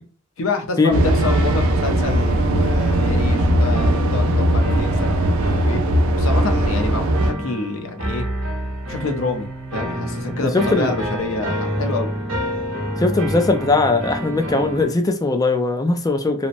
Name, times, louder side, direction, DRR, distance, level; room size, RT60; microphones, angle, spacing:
voice 1, 0.4-5.8 6.2-8.3 8.9-12.1, left 3 dB, 70° left, 0.6 m, -27 dB
sound 1, 0.9-7.3, right 1 dB, 85° right, 0.4 m, -19 dB
sound 2, 1.2-14.9, right 1 dB, 70° right, 1.0 m, -28 dB
voice 2, 10.4-10.9 13.0-16.5, left 3 dB, 15° left, 0.3 m, -19 dB
2.8 x 2.0 x 2.5 m
head